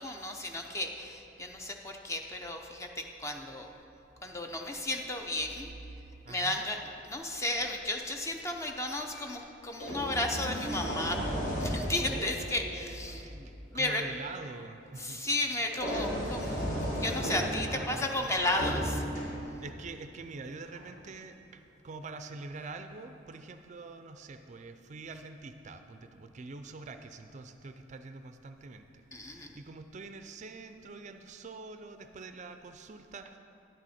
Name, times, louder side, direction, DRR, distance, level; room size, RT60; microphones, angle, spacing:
voice 1, 0.0-3.7 4.2-5.7 6.3-11.2 11.5-13.3 13.7-14.0 15.0-16.6 16.9-19.0 29.1-29.6, left 1 dB, 15° left, 3 dB, 0.6 m, -34 dB
voice 2, 6.2-6.6 12.1-15.2 17.5-18.6 19.6-33.4, right 3 dB, 40° right, 8 dB, 0.4 m, -45 dB
sound 1, 9.1-9.3 9.8-13.3 15.7-19.7 20.7-20.9, equal, 45° left, 1.6 m, -35 dB
10.5 x 9.0 x 4.3 m, 2.9 s
head